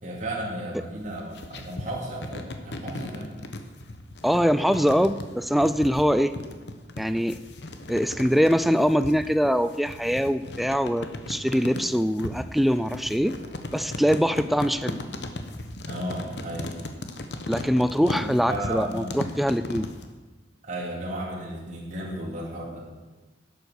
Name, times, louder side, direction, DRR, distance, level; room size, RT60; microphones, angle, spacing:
voice 1, 0.0-3.3 15.9-16.7 18.0-19.1 20.6-22.9, right 1 dB, 40° right, -3 dB, 2.5 m, -34 dB
sound 1, 1.0-20.1, left 1 dB, 65° left, 1.0 m, -37 dB
voice 2, 4.2-6.3 7.0-7.4 7.9-13.4 13.7-15.0 17.5-19.9, equal, ahead, 12 dB, 0.3 m, -23 dB
11.5 x 8.0 x 6.4 m, 1.3 s
head